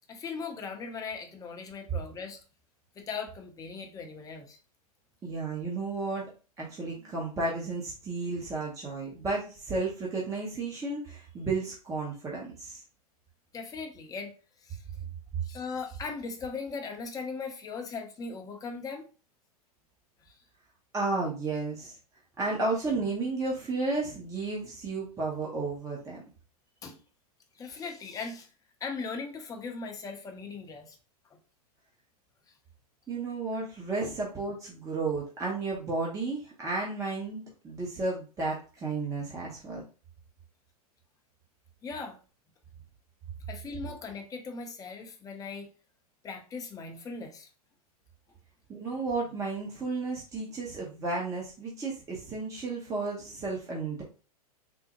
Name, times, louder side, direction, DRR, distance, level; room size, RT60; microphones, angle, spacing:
voice 1, 0.1-2.4 2.9-4.6 13.5-14.3 14.6-14.8 15.4-19.1 20.3-20.4 26.8-27.0 27.5-28.5 28.8-31.0 34.0-34.1 41.8-42.2 43.5-45.7 46.2-47.5, left 4 dB, 20° left, 3 dB, 0.7 m, -39 dB
voice 2, 5.2-6.3 6.6-12.8 20.9-22.0 22.4-26.2 33.1-39.8 48.7-54.0, right 3 dB, 15° right, -3 dB, 0.7 m, -33 dB
3.6 x 2.0 x 2.9 m, 0.35 s
hypercardioid pair, 110°, 20 cm